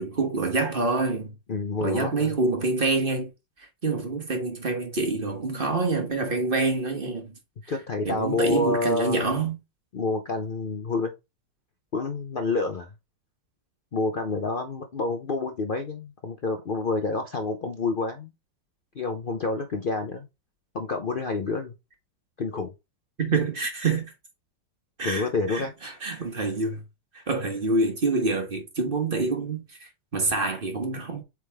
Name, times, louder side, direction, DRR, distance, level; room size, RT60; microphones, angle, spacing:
voice 1, 0.0-1.4 1.8-3.3 3.8-7.3 8.0-9.6 23.2-24.1 25.0-26.8 27.1-31.2, right 3 dB, 35° right, 1.2 m, -26 dB
voice 2, 1.5-2.4 7.7-9.3 9.9-11.1 11.9-12.9 13.9-18.3 18.9-20.3 20.7-21.7 22.4-22.7 25.0-25.7, left 3 dB, 85° left, 0.4 m, -28 dB
7.9 x 3.5 x 3.4 m
omnidirectional pair, 1.9 m